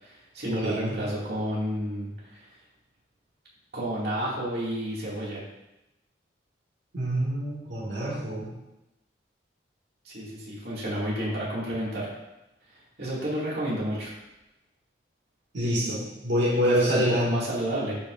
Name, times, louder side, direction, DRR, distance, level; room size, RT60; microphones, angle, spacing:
voice 1, 0.0-2.4 3.7-5.4 10.0-12.1 13.0-14.1 16.5-18.0, right 1 dB, 60° right, -6 dB, 2.3 m, -31 dB
voice 2, 0.6-1.0 6.9-8.5 15.5-17.3, equal, 75° right, -6 dB, 2.0 m, -26 dB
13.5 x 4.9 x 2.6 m, 0.96 s
head